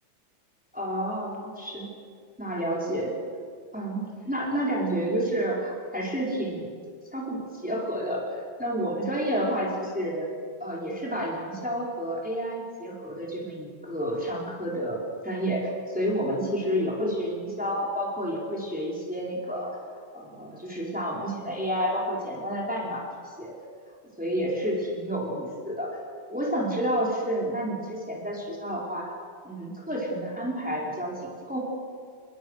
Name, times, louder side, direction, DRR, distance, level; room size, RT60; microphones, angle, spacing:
voice 1, 0.7-1.9 2.4-3.1 3.7-6.7 7.1-10.3 10.6-19.8 20.1-23.1 23.4-23.5 24.2-26.0 26.3-29.1 29.4-31.6, equal, 5° right, -3 dB, 4.6 m, -30 dB
29.0 x 21.5 x 6.5 m, 2.1 s
omnidirectional pair, 2.2 m